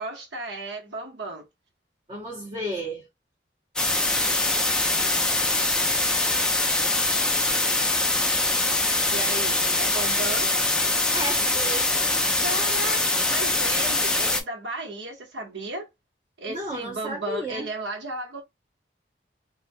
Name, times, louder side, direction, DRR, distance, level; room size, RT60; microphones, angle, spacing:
voice 1, 0.0-1.4 9.1-10.5 12.4-15.9 16.4-18.4, right 2 dB, 90° right, 0.9 m, -34 dB
voice 2, 2.1-3.1 11.1-11.9 16.5-17.7, right 1 dB, 30° right, 0.9 m, -32 dB
sound 1, 3.8-14.4, left 2 dB, 5° left, 0.3 m, -23 dB
3.2 x 2.2 x 2.6 m
head